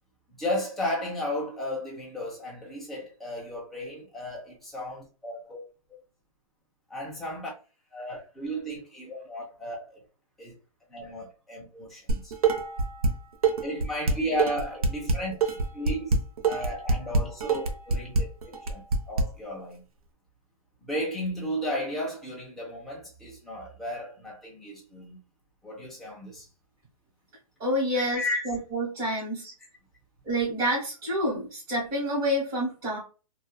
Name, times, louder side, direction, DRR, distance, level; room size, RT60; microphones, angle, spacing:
voice 1, 0.4-5.6 5.9-6.0 6.9-7.5 7.9-10.0 10.4-10.6 10.9-12.3 13.6-16.2 16.4-19.8 20.8-25.2 25.6-26.5 27.9-28.4, left 1 dB, ahead, 0.4 m, -34 dB
Dishes pots and pans, 12.1-13.1 13.4-19.2, right 3 dB, 90° right, 0.7 m, -25 dB
voice 2, 27.6-29.5 30.2-33.0, equal, 20° right, 1.2 m, -28 dB
2.6 x 2.2 x 2.2 m
hypercardioid pair, 160°, 18 cm